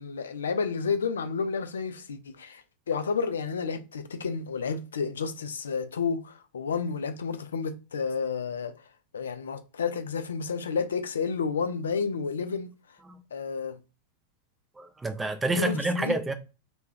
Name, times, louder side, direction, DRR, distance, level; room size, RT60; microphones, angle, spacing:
voice 1, 0.0-8.7 9.1-12.7 13.3-13.8 15.5-16.1, left 5 dB, 70° left, 0.3 m, -31 dB
voice 2, 14.8-16.3, right 2 dB, 10° right, 0.4 m, -28 dB
2.2 x 2.2 x 3.3 m
figure-of-eight pair, 90°, 0 cm